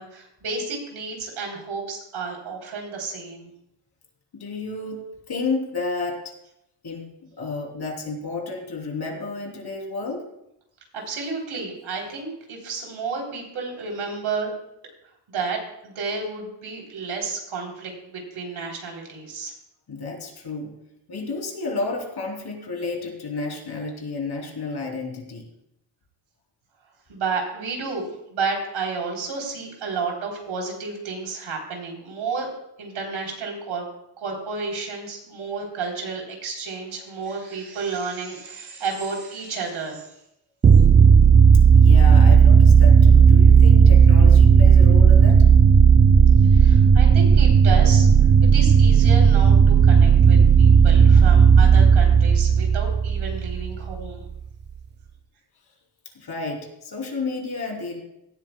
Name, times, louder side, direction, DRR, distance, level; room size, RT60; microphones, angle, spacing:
voice 1, 0.0-3.5 10.9-14.5 15.3-19.5 27.1-32.5 32.8-33.9 34.2-40.1 46.5-48.1 48.5-54.2, right 4 dB, 75° right, 0 dB, 3.7 m, -31 dB
voice 2, 4.3-5.0 5.3-6.3 6.8-10.2 19.9-20.7 21.1-25.5 41.7-45.5 56.1-58.0, left 3 dB, 50° left, 1 dB, 3.3 m, -31 dB
sound 1, 40.6-54.1, right 6 dB, 25° right, 0.4 m, -13 dB
17.5 x 12.5 x 2.3 m, 0.81 s
cardioid pair, 95°, 49 cm